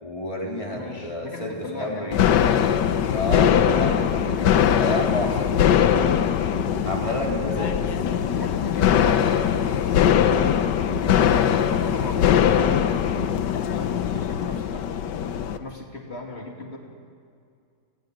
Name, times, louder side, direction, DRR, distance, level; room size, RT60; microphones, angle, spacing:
voice 1, 0.0-2.2 3.0-6.1 6.8-7.9, left 1 dB, 20° left, -1 dB, 3.6 m, -30 dB
voice 2, 0.7-2.1 3.7-4.0 7.5-7.8 8.1-10.3 10.8-12.8 13.5-15.0 15.5-16.8, left 2 dB, 35° left, 1 dB, 3.0 m, -37 dB
sound 1, 2.1-15.6, left 9 dB, 90° left, 1.5 m, -21 dB
29.5 x 20.0 x 5.2 m, 2.4 s
omnidirectional pair, 1.8 m